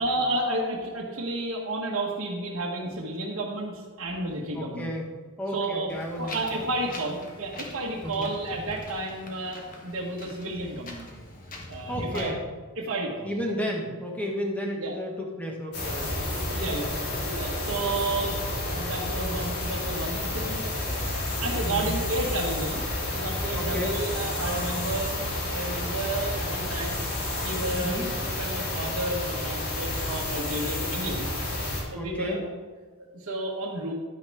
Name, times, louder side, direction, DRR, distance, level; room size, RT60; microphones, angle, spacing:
voice 1, 0.0-4.9 5.5-5.9 6.2-11.1 11.7-12.3 12.8-13.3 14.8-15.0 16.5-16.9 17.2-18.4 18.7-20.8 21.4-22.8 23.1-25.2 25.5-27.0 27.4-28.1 28.4-31.3 31.9-32.4 33.1-33.9, right 2 dB, 65° right, -4 dB, 1.4 m, -31 dB
voice 2, 4.5-5.1 5.4-6.7 8.0-8.3 11.9-12.4 13.2-16.3 16.9-17.6 21.6-22.0 23.5-24.0 27.7-28.1 31.9-32.4, equal, 5° left, -1 dB, 1.5 m, -33 dB
Wind, 5.9-12.3, left 1 dB, 40° left, 1.5 m, -42 dB
sound 1, 15.7-31.8, left 1 dB, 80° left, 3.5 m, -30 dB
10.5 x 9.3 x 3.5 m, 1.5 s
head